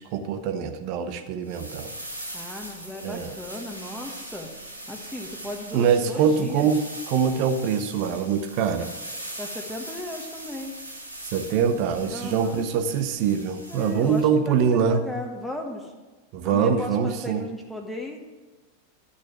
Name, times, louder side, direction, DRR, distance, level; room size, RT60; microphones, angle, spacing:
voice 1, 0.1-1.9 3.0-3.3 5.7-8.9 11.3-15.0 16.3-17.5, right 7 dB, 45° right, 8 dB, 1.0 m, -24 dB
sound 1, 1.4-14.3, right 1 dB, 90° right, 1.8 m, -40 dB
voice 2, 2.3-4.5 4.9-6.7 9.4-10.7 12.1-12.7 13.7-15.9 16.4-18.2, left 1 dB, ahead, 0 dB, 1.4 m, -36 dB
12.5 x 6.3 x 7.3 m, 1.2 s
figure-of-eight pair, 90°, 0 cm